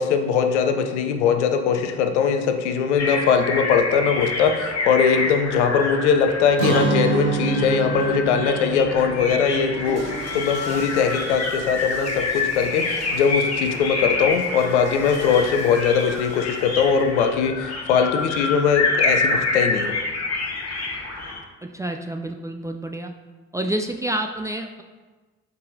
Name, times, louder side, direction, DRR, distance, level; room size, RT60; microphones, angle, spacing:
voice 1, 0.0-10.0 10.3-19.9, left 6 dB, 70° left, 7 dB, 0.6 m, -21 dB
sound 1, 3.0-21.4, left 3 dB, 45° left, 1.2 m, -27 dB
Guitar, 6.6-12.4, right 5 dB, 75° right, 0.7 m, -28 dB
Water / Toilet flush, 8.8-17.2, right 1 dB, 45° right, 1.9 m, -41 dB
voice 2, 21.7-23.1 23.5-24.8, right 1 dB, 10° right, 4 dB, 0.3 m, -28 dB
7.9 x 4.7 x 2.6 m, 1.3 s
figure-of-eight pair, 45°, 36 cm